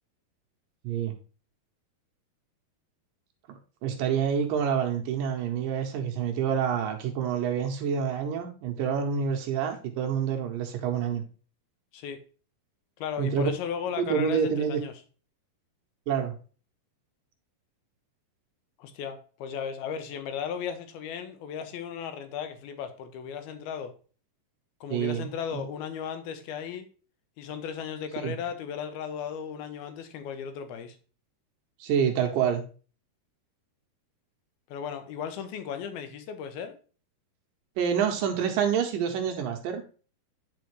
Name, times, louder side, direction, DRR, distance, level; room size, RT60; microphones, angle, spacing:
voice 1, 0.8-1.2 3.5-11.2 13.2-13.5 14.0-14.8 16.1-16.3 24.9-25.6 28.2-28.3 31.8-32.6 37.8-39.8, right 7 dB, 75° right, 2.2 m, -27 dB
voice 2, 13.0-14.9 18.8-23.9 24.8-26.9 27.4-31.0 34.7-36.8, left 7 dB, 80° left, 2.7 m, -36 dB
9.5 x 5.1 x 3.1 m
omnidirectional pair, 4.5 m